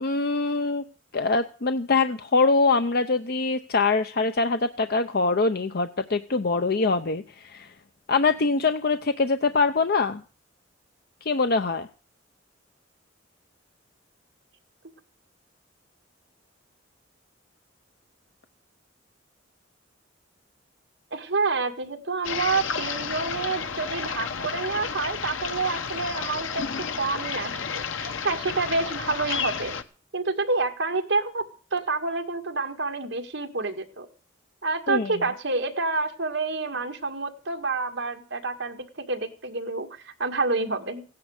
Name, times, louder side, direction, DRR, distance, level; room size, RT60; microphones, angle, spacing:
voice 1, 0.0-0.8 1.1-7.7 8.1-10.2 11.2-11.9 34.9-35.1, left 3 dB, 50° left, 8 dB, 0.7 m, -23 dB
voice 2, 21.1-26.6 27.0-29.7 30.1-31.5 31.7-34.1 34.6-41.0, right 3 dB, 65° right, 4 dB, 2.1 m, -28 dB
sound 1, 22.2-29.8, left 6 dB, 85° left, 1.1 m, -31 dB
16.0 x 10.5 x 6.5 m, 0.37 s
head